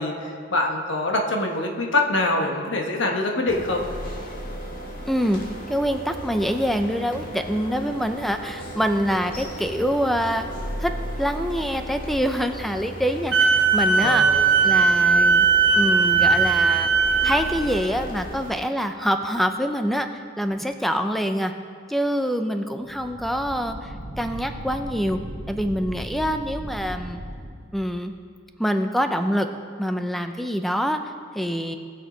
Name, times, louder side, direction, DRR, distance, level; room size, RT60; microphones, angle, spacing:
voice 1, 0.0-3.9 14.0-14.5, left 2 dB, 75° left, 1 dB, 1.3 m, -24 dB
sound 1, 3.5-18.6, equal, 45° left, 1.7 m, -35 dB
voice 2, 5.1-5.4 5.7-10.5 10.8-14.2 14.6-15.5 15.8-16.9 17.2-20.1 20.4-21.5 21.9-25.2 25.5-27.2 27.7-28.1 28.6-29.5 29.8-31.0 31.3-31.8, equal, ahead, 7 dB, 0.5 m, -25 dB
Wind instrument woodwind instrument, 13.3-17.4, right 5 dB, 80° right, 1.2 m, -18 dB
sound 2, 22.8-27.6, equal, 55° right, 2.0 m, -37 dB
19.0 x 6.5 x 5.1 m, 2.1 s
head